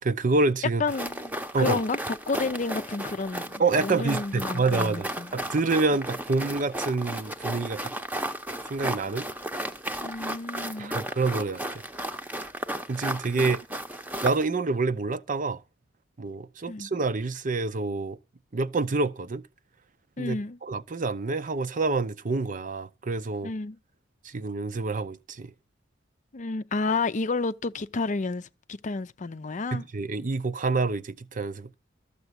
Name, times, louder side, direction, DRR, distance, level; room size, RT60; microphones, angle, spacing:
voice 1, 0.0-0.8 1.5-1.8 3.6-7.9 8.7-9.3 10.8-11.8 12.9-13.6 14.2-15.6 16.2-18.2 18.5-19.4 20.2-23.5 24.2-25.5 29.7-31.7, right 3 dB, 45° right, 0.6 m, -27 dB
voice 2, 0.8-5.4 10.0-11.0 13.4-13.5 16.7-16.9 20.2-20.6 23.4-23.8 26.3-29.8, left 3 dB, 40° left, 0.6 m, -31 dB
sound 1, 0.9-14.5, right 1 dB, 10° right, 0.8 m, -34 dB
13.5 x 6.9 x 8.0 m
head